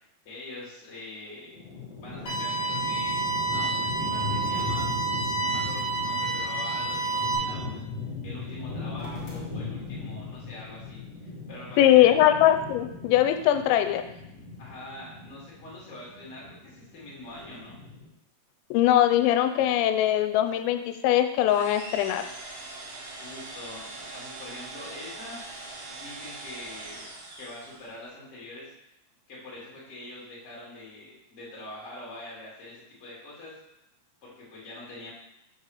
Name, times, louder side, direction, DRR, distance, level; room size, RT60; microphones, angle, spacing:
voice 1, 0.2-1.6 2.0-3.1 3.4-4.8 5.4-7.8 8.2-12.1 14.6-17.8 23.1-25.4 25.9-27.1 27.4-28.7 29.3-33.6 34.2-35.1, left 1 dB, 25° left, -6 dB, 1.8 m, -44 dB
sound 1, 1.5-18.1, left 3 dB, 40° left, 1.6 m, -38 dB
sound 2, 2.3-7.4, right 3 dB, 60° left, 1.4 m, -29 dB
voice 2, 11.8-14.0 18.7-22.2, left 12 dB, 85° left, 8 dB, 2.8 m, -21 dB
sound 3, 21.5-28.0, right 2 dB, 70° right, 3.0 m, -42 dB
7.1 x 4.1 x 6.4 m, 0.85 s
omnidirectional pair, 5.1 m